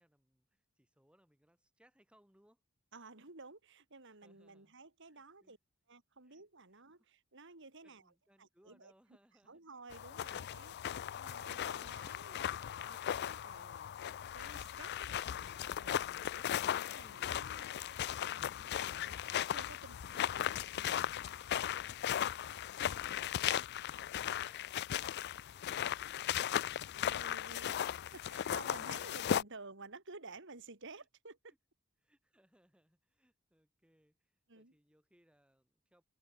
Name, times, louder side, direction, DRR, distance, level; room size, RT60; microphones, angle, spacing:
voice 1, 0.0-2.6 4.1-4.7 5.1-5.6 6.2-6.4 6.7-7.1 7.8-9.6 22.0-26.4 30.9-31.1 32.0-36.0, equal, 5° right, 3.8 m, -72 dB
voice 2, 2.9-5.6 5.9-8.0 8.4-8.9 9.5-16.4 16.8-21.0 26.9-27.8 28.1-31.5 34.5-34.7, right 3 dB, 60° right, 3.3 m, -54 dB
sound 1, 9.9-29.4, left 10 dB, 50° left, 0.3 m, -37 dB
head